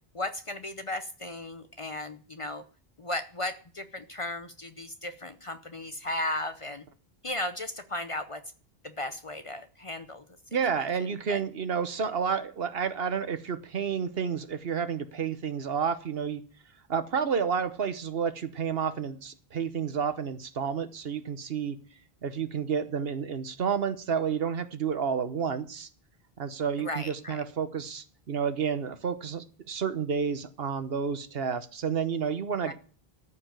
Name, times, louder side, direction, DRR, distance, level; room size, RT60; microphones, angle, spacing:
voice 1, 0.1-2.6 3.0-6.8 7.2-8.4 9.0-10.2 11.3-11.4 26.8-27.4 32.6-32.7, left 1 dB, 35° left, 10 dB, 0.6 m, -35 dB
voice 2, 10.5-16.4 16.9-21.8 22.2-25.9 26.4-32.7, right 6 dB, 70° right, 11 dB, 1.2 m, -30 dB
13.5 x 5.2 x 8.9 m, 0.42 s
omnidirectional pair, 1.0 m